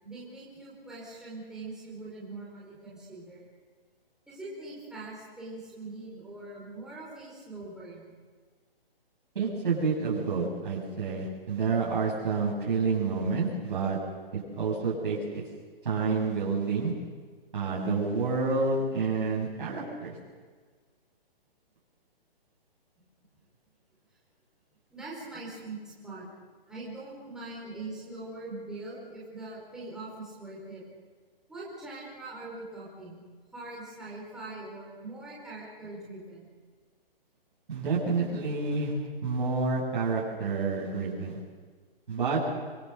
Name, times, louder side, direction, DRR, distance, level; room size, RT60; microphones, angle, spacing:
voice 1, 0.0-3.4 4.3-8.1 24.9-26.3 26.7-30.8 31.5-33.2 33.5-36.5, right 2 dB, ahead, -7 dB, 5.2 m, -42 dB
voice 2, 9.3-14.0 14.3-15.4 15.8-16.9 17.5-20.1 37.7-38.9 39.2-41.4 42.1-42.4, right 4 dB, 60° right, -5 dB, 6.7 m, -29 dB
25.5 x 21.0 x 6.8 m, 1.5 s
hypercardioid pair, 170°, 29 cm